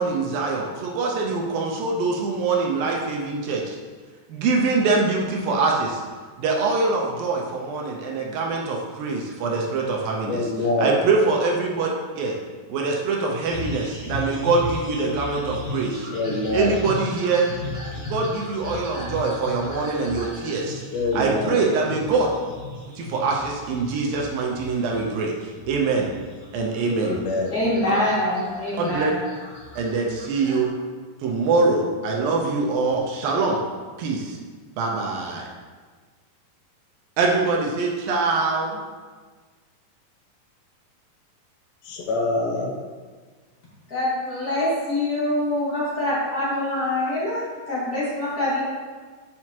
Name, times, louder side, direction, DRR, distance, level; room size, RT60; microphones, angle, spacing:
voice 1, 0.0-3.8 4.3-6.0 6.4-10.5 10.8-11.9 12.2-12.4 12.7-16.1 16.5-17.5 18.1-20.8 21.1-22.3 23.0-26.1 26.5-27.2 28.7-29.1 29.8-30.7 31.2-33.6 34.0-34.4 34.8-35.5 37.2-38.8, right 3 dB, 75° right, -1 dB, 2.4 m, -24 dB
voice 2, 10.3-10.9 16.1-16.8 20.9-21.6 26.9-27.5 41.9-42.7, left 2 dB, 80° left, 0 dB, 2.7 m, -25 dB
sound 1, 13.4-30.7, left 2 dB, 10° left, 0.9 m, -36 dB
voice 3, 27.5-29.1 43.9-48.6, left 1 dB, 30° left, -9 dB, 2.1 m, -25 dB
9.5 x 6.2 x 2.9 m, 1.5 s
omnidirectional pair, 4.4 m